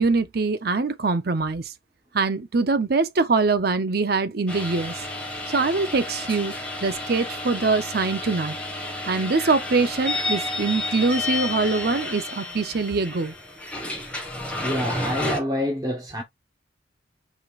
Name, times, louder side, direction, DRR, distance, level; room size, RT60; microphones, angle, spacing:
voice 1, 0.0-1.7 2.1-5.0 5.5-8.6 9.1-13.3, right 3 dB, 55° right, 0.7 m, -23 dB
sound 1, 4.5-15.4, left 2 dB, 5° left, 1.5 m, -31 dB
voice 2, 14.5-16.2, left 1 dB, 20° right, 1.0 m, -27 dB
5.1 x 3.9 x 2.4 m
head